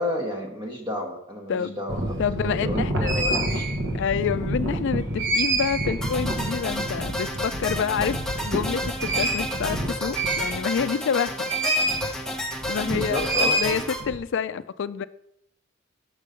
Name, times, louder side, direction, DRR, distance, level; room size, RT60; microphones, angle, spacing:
voice 1, 0.0-3.7 12.9-13.6, left 1 dB, 25° right, 1.0 m, -31 dB
sound 1, 1.9-10.9 11.5-12.1 12.4-14.2, right 1 dB, 60° right, 1.1 m, -27 dB
voice 2, 2.2-3.1 3.9-11.5 12.0-12.3 12.7-15.1, left 7 dB, 60° left, 0.4 m, -28 dB
sound 2, 6.0-14.0, left 1 dB, 5° left, 0.8 m, -31 dB
6.6 x 5.3 x 5.0 m
head